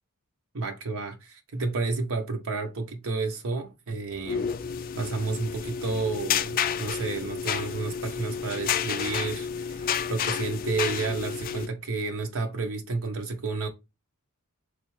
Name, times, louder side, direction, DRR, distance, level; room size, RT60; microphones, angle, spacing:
voice 1, 0.5-4.5 5.0-13.7, right 3 dB, 65° right, 0.8 m, -31 dB
sound 1, 4.2-11.7, left 7 dB, 40° left, 0.3 m, -30 dB
3.7 x 3.2 x 3.1 m
head